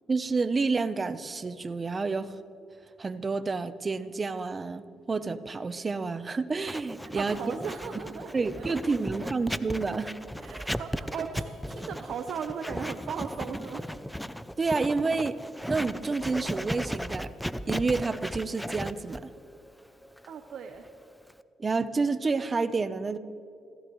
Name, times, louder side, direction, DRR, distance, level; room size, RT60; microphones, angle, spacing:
voice 1, 0.1-2.3 3.0-7.4 8.3-10.1 14.6-15.4 15.7-17.3 17.7-19.3 21.6-23.2, right 4 dB, 30° right, 12 dB, 0.8 m, -29 dB
Writing, 6.7-21.4, equal, 5° left, 0.6 m, -36 dB
voice 2, 7.0-9.3 10.4-13.9 20.3-20.9, right 6 dB, 65° right, 5 dB, 1.0 m, -38 dB
27.0 x 16.0 x 3.2 m, 2.6 s
cardioid pair, 90°, 0 cm